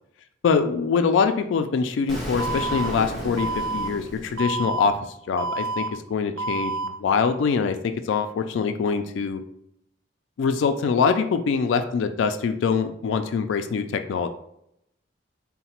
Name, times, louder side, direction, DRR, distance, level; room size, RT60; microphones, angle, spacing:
voice 1, 0.4-5.0 5.3-9.4 10.4-14.3, left 5 dB, 80° left, 8 dB, 0.3 m, -24 dB
Explosion, 2.1-5.0, right 1 dB, ahead, 1.0 m, -34 dB
Alarm, 2.4-2.9 3.4-3.9 4.4-4.9 5.4-5.9 6.4-6.9, right 3 dB, 80° right, 0.5 m, -28 dB
3.8 x 2.1 x 4.3 m, 0.76 s
head